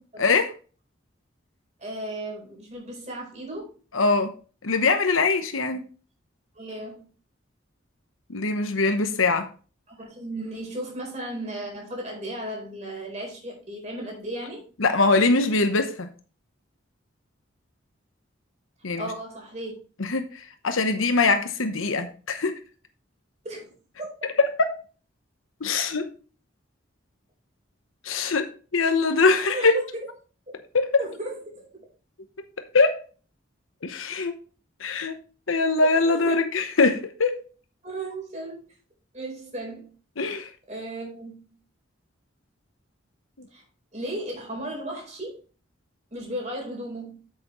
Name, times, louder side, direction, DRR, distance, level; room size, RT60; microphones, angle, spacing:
voice 1, 0.2-0.5 3.9-4.3 4.6-5.8 8.3-9.5 14.8-16.1 18.8-19.1 20.0-22.6 24.6-24.8 25.6-26.0 28.0-29.7 30.7-31.0 32.7-33.0 33.8-34.3 34.8-35.2 35.5-37.4 40.2-40.5, left 3 dB, 90° left, 1.0 m, -22 dB
voice 2, 1.8-3.7 6.6-7.0 9.9-14.6 18.9-19.7 23.4-23.7 29.5-30.0 31.0-31.7 35.8-36.4 37.8-38.6 39.1-39.9 40.7-41.3 43.5-43.6 43.9-45.4 46.1-47.2, right 1 dB, 35° right, 4.2 m, -35 dB
8.4 x 7.8 x 3.1 m
head